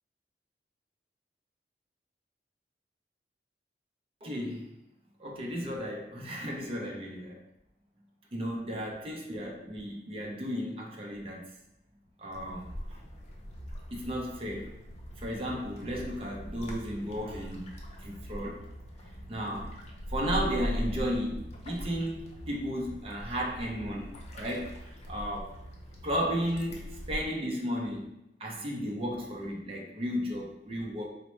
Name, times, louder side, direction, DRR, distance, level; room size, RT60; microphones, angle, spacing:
voice 1, 4.2-4.7 5.2-7.4 8.3-11.5 12.2-13.0 13.9-14.7 15.2-17.7 18.0-18.7 19.3-19.7 20.1-25.5 26.0-28.1 28.4-31.1, equal, 35° right, -1 dB, 0.6 m, -34 dB
sound 1, 12.3-27.2, equal, 40° left, 0.6 m, -41 dB
4.3 x 2.1 x 3.0 m, 0.84 s
head